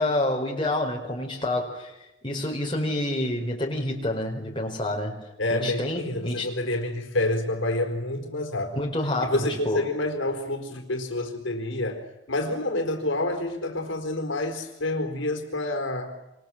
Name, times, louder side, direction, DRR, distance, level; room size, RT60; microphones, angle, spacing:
voice 1, 0.0-1.9 2.2-5.2 5.5-6.5 8.7-9.9, left 1 dB, 25° left, 0 dB, 5.1 m, -28 dB
voice 2, 5.4-8.8 9.2-16.1, left 2 dB, 75° left, 3 dB, 4.3 m, -28 dB
28.0 x 27.5 x 7.7 m, 0.92 s
head